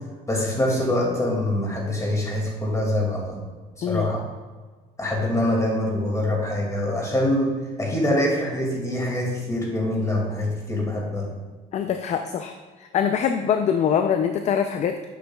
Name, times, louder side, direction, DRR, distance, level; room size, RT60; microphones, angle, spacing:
voice 1, 0.3-3.4 3.8-4.2 5.0-7.5 7.8-11.3, left 1 dB, 20° left, -2 dB, 2.2 m, -24 dB
voice 2, 11.7-15.1, left 8 dB, 45° left, 7 dB, 0.4 m, -24 dB
9.1 x 6.2 x 2.3 m, 1.4 s
cardioid pair, 110°, 17 cm